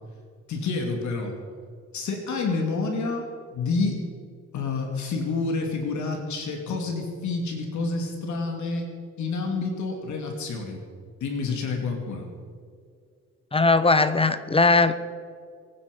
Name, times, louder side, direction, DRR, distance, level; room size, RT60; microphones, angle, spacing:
voice 1, 0.5-1.4 1.9-4.0 4.5-8.9 9.2-10.8 11.2-12.3, left 3 dB, 70° left, 2 dB, 3.0 m, -28 dB
voice 2, 13.5-14.9, left 3 dB, 20° left, 13 dB, 1.0 m, -19 dB
24.5 x 10.0 x 5.5 m, 2.2 s
cardioid pair, 90°, 30 cm